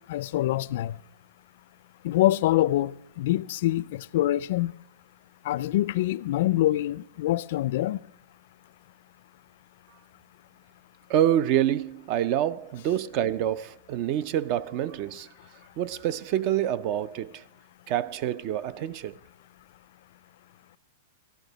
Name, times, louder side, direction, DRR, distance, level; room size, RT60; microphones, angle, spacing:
voice 1, 0.1-0.9 2.0-4.7 5.5-8.0, left 15 dB, 60° left, 0.3 m, -25 dB
voice 2, 11.1-15.3 15.8-17.4 17.9-19.2, right 11 dB, 45° right, 0.4 m, -27 dB
14.5 x 11.5 x 4.0 m
hypercardioid pair, 145°, 0 cm